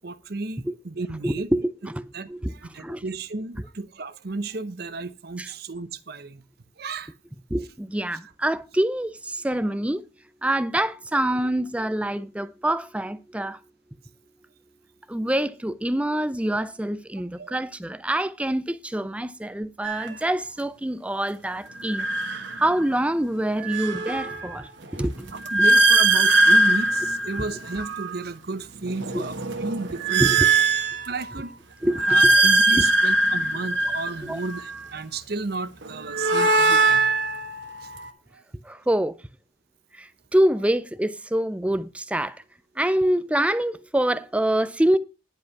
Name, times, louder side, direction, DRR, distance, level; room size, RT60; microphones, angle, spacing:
voice 1, 0.0-1.5 2.1-2.3 2.6-6.4 6.8-7.1 17.4-17.6 25.5-29.3 29.6-30.5 31.1-31.5 32.0-37.1 37.8-37.9 38.3-38.4 38.7-38.8, right 3 dB, 55° right, 0.8 m, -33 dB
voice 2, 1.2-3.0 5.4-5.5 7.5-10.0 10.4-13.6 15.1-25.3 27.4-27.5 29.1-29.2 30.2-30.5 31.8-32.3 32.7-32.8 34.2-34.4 38.6-39.2 39.9-42.4 42.8-45.0, right 1 dB, 5° right, 0.4 m, -26 dB
sound 1, 19.8-20.1 21.8-23.0 23.4-28.2 28.8-31.4 31.8-34.8 35.8-38.1, right 2 dB, 70° right, 1.4 m, -21 dB
10.5 x 5.2 x 5.8 m
head